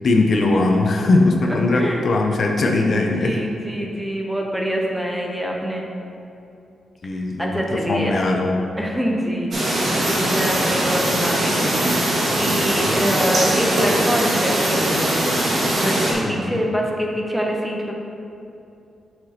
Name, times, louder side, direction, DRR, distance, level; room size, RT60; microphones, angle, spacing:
voice 1, 0.0-3.4 7.0-8.6 12.9-13.1 16.3-16.6, left 2 dB, 50° left, 2 dB, 0.5 m, -20 dB
voice 2, 1.5-2.0 2.4-2.9 3.2-5.9 7.1-8.2 8.8-12.1 12.4-15.3 15.8-17.9, equal, 5° right, -1 dB, 0.7 m, -25 dB
sound 1, 9.5-16.1, right 1 dB, 55° right, 1.5 m, -21 dB
7.7 x 5.8 x 2.8 m, 2.7 s
wide cardioid pair, 135°, 0 cm